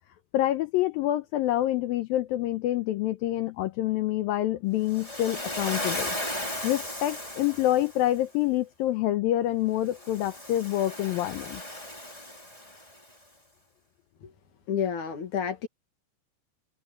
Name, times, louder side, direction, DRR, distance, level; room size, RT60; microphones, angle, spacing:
voice 1, 0.3-6.2 6.6-11.6, left 14 dB, 80° left, 2.2 m, -27 dB
Waves surf, 4.9-8.1 9.9-13.0, left 1 dB, 10° left, 3.8 m, -36 dB
voice 2, 14.7-15.7, left 8 dB, 55° left, 3.0 m, -30 dB
omnidirectional pair, 4.8 m